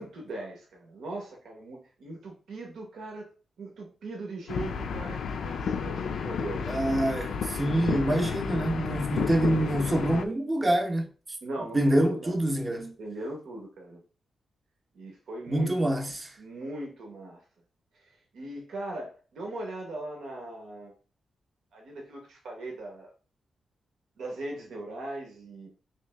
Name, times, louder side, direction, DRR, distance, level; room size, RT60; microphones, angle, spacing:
voice 1, 0.0-3.3 3.6-6.6 11.4-12.4 13.0-14.0 14.9-15.7 16.4-17.4 17.9-20.9 21.7-23.1 24.2-25.8, right 2 dB, 90° right, 0.9 m, -39 dB
sound 1, 4.5-10.2, left 6 dB, 70° left, 0.3 m, -32 dB
voice 2, 6.7-11.1 11.7-13.0 15.5-16.3, right 1 dB, 20° right, 0.6 m, -26 dB
3.3 x 2.9 x 3.3 m
wide cardioid pair, 155°, 0 cm